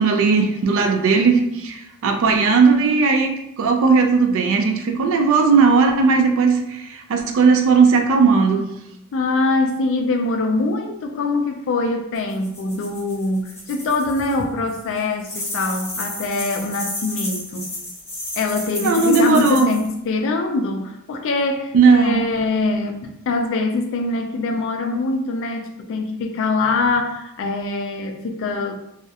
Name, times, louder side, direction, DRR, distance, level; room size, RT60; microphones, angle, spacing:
voice 1, 0.0-8.6 18.8-19.7 21.7-22.2, right 4 dB, 65° right, 4 dB, 0.4 m, -17 dB
voice 2, 9.1-17.7 18.4-28.8, left 3 dB, 60° left, 4 dB, 0.4 m, -23 dB
sound 1, 12.1-14.4 14.7-19.9, left 1 dB, 10° left, 0.9 m, -32 dB
2.3 x 2.0 x 2.7 m, 0.82 s
head